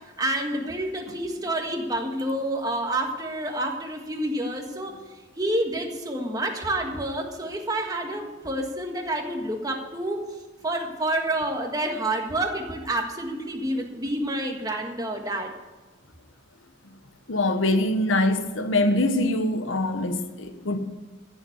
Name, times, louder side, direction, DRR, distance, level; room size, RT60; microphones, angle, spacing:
voice 1, 0.2-5.0 5.4-10.2 10.6-15.5, right 1 dB, 20° right, 1.6 m, -28 dB
voice 2, 17.3-20.8, left 1 dB, 80° left, 1.1 m, -23 dB
15.0 x 7.2 x 8.0 m
head